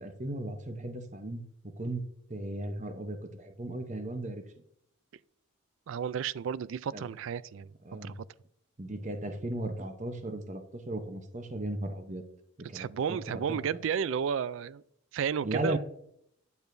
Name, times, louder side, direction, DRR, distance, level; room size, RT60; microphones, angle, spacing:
voice 1, 0.0-1.4 1.8-2.0 2.3-4.4 6.9-7.1 7.8-8.1 8.8-12.2 12.7-13.6 15.4-15.8, right 1 dB, 35° right, 0.8 m, -36 dB
voice 2, 5.9-7.7 8.0-8.1 12.6-14.8 15.1-15.8, right 7 dB, 65° right, 0.3 m, -32 dB
10.0 x 6.9 x 2.6 m
head